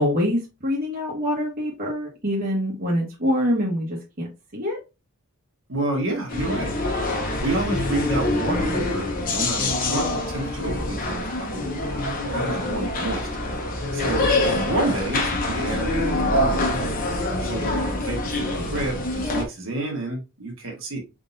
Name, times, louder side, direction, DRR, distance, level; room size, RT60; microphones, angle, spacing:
voice 1, 0.0-4.3 4.5-4.8 14.6-14.7, equal, 45° right, -3 dB, 1.3 m, -25 dB
voice 2, 5.7-7.0 7.4-11.8 12.2-13.3 13.9-16.8 17.4-21.0, right 2 dB, 65° right, 1 dB, 1.7 m, -29 dB
sound 1, 6.3-19.4, left 2 dB, 40° left, 1.1 m, -25 dB
4.8 x 3.7 x 2.6 m, 0.27 s
head